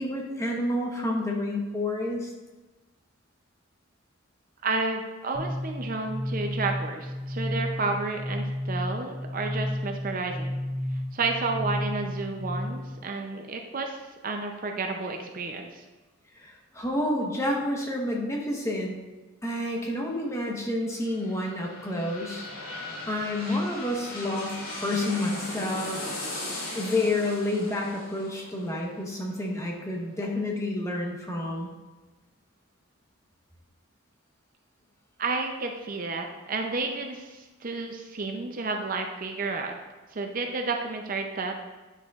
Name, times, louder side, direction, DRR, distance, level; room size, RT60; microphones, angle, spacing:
voice 1, 0.0-2.3 16.4-19.0 19.4-22.4 23.1-24.6 24.8-26.0 26.7-31.7, left 1 dB, 15° left, -1 dB, 1.0 m, -29 dB
voice 2, 4.6-10.6 11.1-15.8 35.2-39.7 40.1-41.6, right 3 dB, 40° right, 3 dB, 0.5 m, -31 dB
sound 1, 5.3-12.9, left 1 dB, 15° right, 1.8 m, -32 dB
sound 2, 20.8-30.4 30.9-31.0, left 2 dB, 80° left, 2.5 m, -39 dB
9.9 x 6.5 x 2.4 m, 1.2 s
head